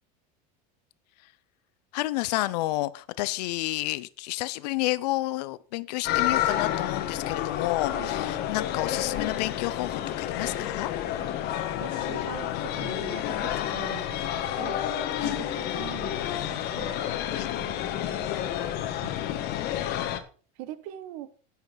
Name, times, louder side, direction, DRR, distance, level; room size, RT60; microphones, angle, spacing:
voice 1, 1.9-10.9 15.2-15.4 17.3-17.5, left 18 dB, 75° left, 0.6 m, -30 dB
sound 1, 6.0-20.2, left 11 dB, 50° left, 1.4 m, -30 dB
voice 2, 11.8-17.2 17.6-18.2 19.0-19.1 20.6-21.3, right 14 dB, 65° right, 1.1 m, -43 dB
10.5 x 5.8 x 5.7 m
supercardioid pair, 120°, 21 cm